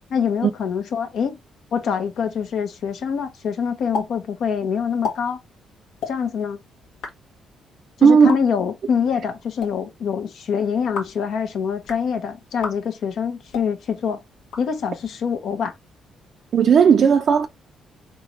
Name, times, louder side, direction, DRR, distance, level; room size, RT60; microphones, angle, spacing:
voice 1, 0.1-1.4 1.7-5.4 6.1-6.6 8.0-14.2 14.6-15.7, left 7 dB, 70° left, 1.1 m, -25 dB
sound 1, 3.9-4.1 4.3-4.4 4.9-5.2 5.9-6.1 6.8-7.1 8.1-8.4 9.4-9.7 10.8-11.2 11.7-12.0 12.5-12.8 13.4-13.7 14.4-15.1, left 5 dB, 85° left, 1.4 m, -32 dB
voice 2, 8.0-8.4 16.5-17.5, right 6 dB, 55° right, 0.5 m, -14 dB
4.2 x 3.7 x 3.0 m
cardioid pair, 90°, 0 cm